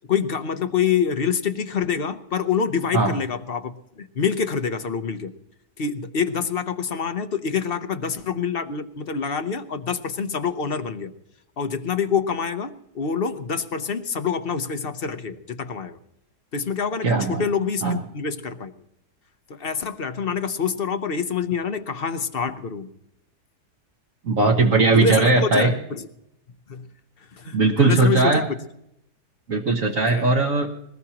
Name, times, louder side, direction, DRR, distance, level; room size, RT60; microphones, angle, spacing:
voice 1, 0.1-5.3 5.8-11.1 11.6-16.0 16.5-18.7 19.5-22.9 24.9-26.1 26.7-26.9 27.3-28.5 30.1-30.3, left 6 dB, 45° left, 10 dB, 0.8 m, -26 dB
voice 2, 17.0-17.4 17.8-18.0 24.2-25.7 27.5-28.5 29.5-30.7, right 3 dB, 55° right, 0 dB, 1.6 m, -19 dB
22.0 x 19.0 x 2.9 m, 0.78 s
omnidirectional pair, 1.7 m